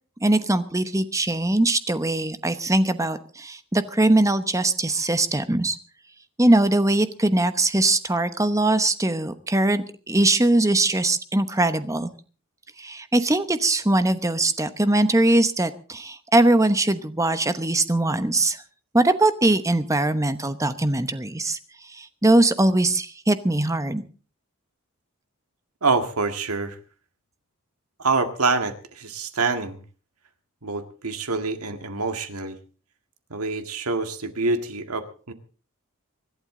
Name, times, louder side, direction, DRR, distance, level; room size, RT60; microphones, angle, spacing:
voice 1, 0.2-5.8 6.4-12.1 12.8-18.6 18.9-21.6 22.0-24.0, right 2 dB, 15° right, 11 dB, 1.0 m, -21 dB
voice 2, 25.8-26.8 28.0-29.8 30.6-32.6 33.3-35.3, right 3 dB, 85° right, 7 dB, 2.0 m, -26 dB
25.5 x 12.0 x 3.8 m, 0.38 s
head